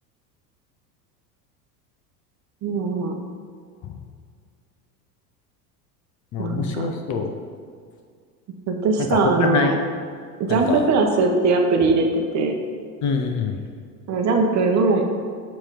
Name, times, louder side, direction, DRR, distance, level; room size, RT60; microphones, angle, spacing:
voice 1, 2.6-3.1 6.4-6.9 8.7-9.8 10.4-12.6 14.1-15.1, right 3 dB, 35° right, 3 dB, 0.9 m, -20 dB
voice 2, 6.3-7.3 9.1-9.8 10.5-10.8 13.0-13.6, left 5 dB, 35° left, 5 dB, 0.6 m, -24 dB
7.4 x 3.0 x 5.1 m, 2.1 s
hypercardioid pair, 80°, 49 cm